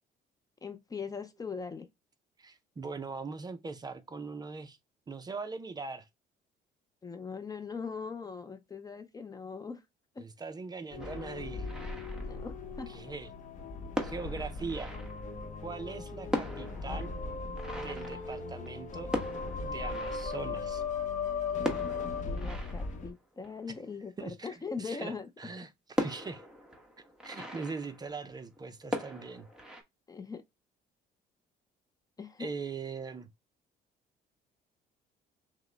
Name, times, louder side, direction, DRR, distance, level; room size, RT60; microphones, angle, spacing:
voice 1, 0.6-1.9 7.0-9.8 10.2-10.3 12.1-12.9 22.3-25.3 30.1-30.4 32.2-32.5, left 5 dB, 20° left, 0.5 m, -40 dB
voice 2, 2.4-4.8 5.1-6.1 10.2-11.7 12.9-13.3 14.0-14.9 15.6-17.1 17.7-19.1 19.6-20.8 24.2-26.4 27.0-29.5 32.4-33.3, right 4 dB, 25° right, 0.5 m, -41 dB
sound 1, 10.9-23.1, left 4 dB, 45° left, 0.9 m, -38 dB
sound 2, 11.0-12.8 13.6-13.7 13.9-15.7 16.0-16.1 16.3-21.0 21.6-24.2 24.8-24.9 25.2-25.3 26.0-28.6 28.9-29.8, left 1 dB, 5° right, 1.1 m, -40 dB
6.0 x 2.1 x 3.3 m
cardioid pair, 110°, 17 cm